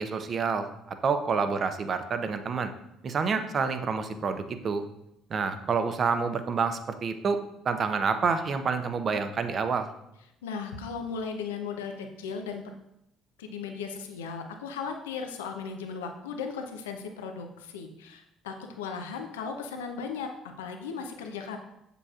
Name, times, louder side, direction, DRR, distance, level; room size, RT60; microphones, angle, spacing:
voice 1, 0.0-2.7 3.0-4.9 5.3-9.9, right 5 dB, 45° right, 9 dB, 0.7 m, -28 dB
voice 2, 10.4-12.6 13.4-20.3 20.6-21.6, left 5 dB, 85° left, 4 dB, 0.6 m, -36 dB
7.4 x 6.7 x 2.4 m, 0.84 s
hypercardioid pair, 60°, 0 cm